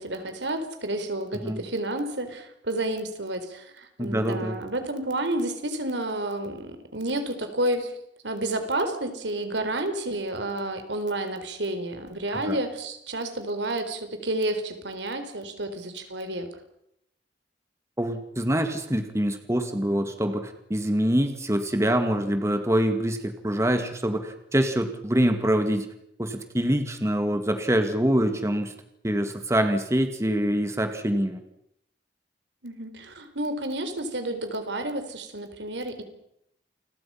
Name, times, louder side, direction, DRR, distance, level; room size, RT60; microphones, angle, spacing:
voice 1, 0.0-7.9 8.2-16.5 32.6-36.0, right 1 dB, 90° right, 8 dB, 4.2 m, -30 dB
voice 2, 4.0-4.6 12.3-12.6 18.0-25.9 26.2-28.7 29.0-31.4, equal, 15° right, 7 dB, 2.1 m, -25 dB
29.0 x 22.0 x 5.8 m, 0.76 s
head